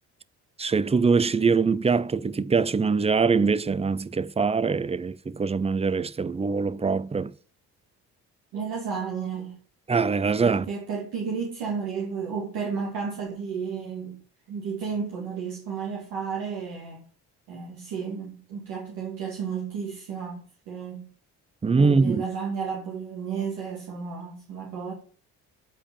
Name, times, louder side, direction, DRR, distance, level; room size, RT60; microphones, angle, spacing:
voice 1, 0.6-7.3 9.9-10.6 21.6-22.2, right 4 dB, 15° right, 0.5 m, -23 dB
voice 2, 8.5-9.6 10.4-14.2 14.5-17.0 17.5-21.1 21.8-24.9, right 6 dB, 80° right, 2.6 m, -32 dB
8.9 x 5.0 x 7.2 m
supercardioid pair, 60°, 36 cm